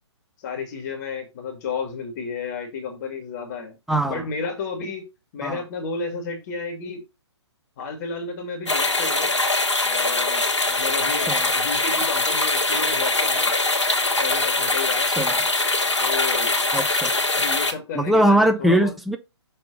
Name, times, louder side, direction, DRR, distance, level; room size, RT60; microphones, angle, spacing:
voice 1, 0.4-3.7 4.1-5.0 5.3-7.0 7.8-9.3 9.8-13.5 14.2-15.1 16.0-16.6 17.3-18.9, left 5 dB, 35° left, 2.1 m, -32 dB
voice 2, 3.9-4.2 5.4-5.6 11.3-11.5 15.2-15.4 16.7-17.1 17.9-19.2, right 1 dB, ahead, 0.5 m, -20 dB
sound 1, 8.7-17.7, left 2 dB, 85° left, 1.9 m, -22 dB
6.6 x 3.9 x 5.1 m
figure-of-eight pair, 130°, 15 cm